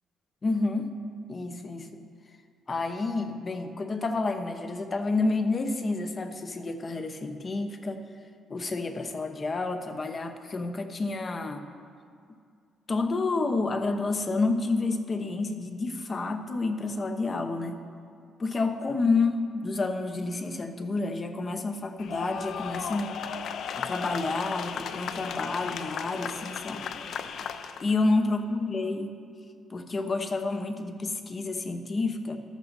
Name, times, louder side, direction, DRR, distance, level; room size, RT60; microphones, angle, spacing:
voice 1, 0.4-0.9 1.3-2.0 2.7-8.0 8.5-11.6 12.9-17.8 18.4-23.2 23.8-26.9 27.8-29.1 29.7-32.4, left 3 dB, 35° left, 7 dB, 0.8 m, -29 dB
sound 1, 22.0-27.9, left 7 dB, 70° left, 0.5 m, -35 dB
14.5 x 12.0 x 2.7 m, 2.2 s
cardioid pair, 90°, 0 cm